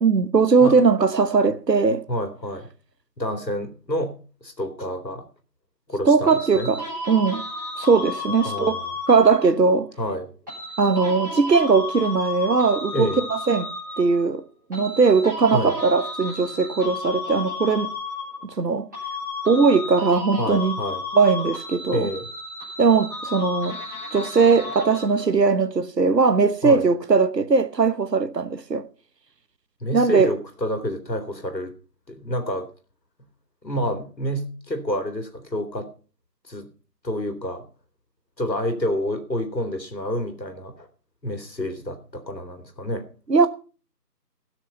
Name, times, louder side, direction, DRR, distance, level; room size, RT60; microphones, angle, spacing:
voice 1, 0.0-2.0 6.0-7.4 7.8-8.7 9.1-9.9 10.8-13.7 14.0-14.4 14.7-17.9 18.6-18.8 19.5-20.7 21.2-22.1 22.8-23.8 24.1-28.9 29.9-30.3 43.3-43.5, right 4 dB, 75° right, 1.1 m, -19 dB
voice 2, 2.1-2.7 3.2-4.1 4.4-5.3 5.9-6.7 8.5-8.9 10.0-10.3 12.9-13.2 15.5-15.7 20.4-21.0 21.9-22.3 26.6-26.8 29.8-31.7 32.1-32.7 33.6-35.9 36.5-36.7 37.0-37.6 38.4-40.9 41.2-43.1, equal, 90° left, 2.7 m, -28 dB
sound 1, 6.3-9.6 10.5-14.3 14.7-18.7 18.9-25.3, left 3 dB, 10° right, 3.8 m, -33 dB
17.0 x 6.4 x 5.5 m
figure-of-eight pair, 175°, 50 cm